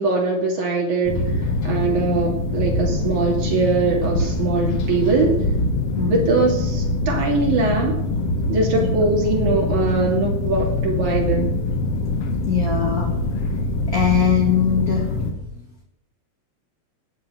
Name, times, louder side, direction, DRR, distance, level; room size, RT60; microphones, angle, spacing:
voice 1, 0.0-5.5 6.0-8.0 8.5-11.6, right 3 dB, 80° right, -1 dB, 4.0 m, -22 dB
sound 1, 1.1-15.3, left 2 dB, 55° left, 2.5 m, -23 dB
voice 2, 6.0-6.3 8.7-8.9 12.4-13.1 13.9-15.7, left 8 dB, 35° left, 0 dB, 2.1 m, -22 dB
18.0 x 6.9 x 9.1 m, 0.84 s
omnidirectional pair, 3.3 m